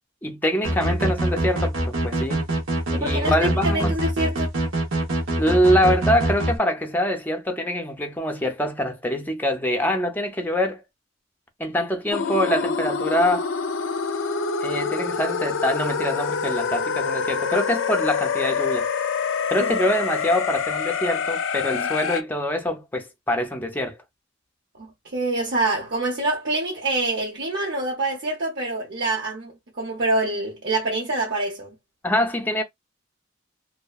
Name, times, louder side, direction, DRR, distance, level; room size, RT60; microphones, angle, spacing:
voice 1, 0.2-2.5 3.0-4.0 5.4-10.8 11.6-13.5 14.6-18.9 19.5-24.0 32.0-32.6, equal, 10° left, 0.5 m, -24 dB
sound 1, 0.6-6.5, right 1 dB, 85° right, 0.9 m, -24 dB
voice 2, 2.9-4.5 19.6-19.8 21.7-21.9 24.8-31.7, right 2 dB, 60° right, 0.8 m, -26 dB
sound 2, 12.1-22.2, left 5 dB, 70° left, 0.4 m, -26 dB
2.7 x 2.1 x 2.3 m
head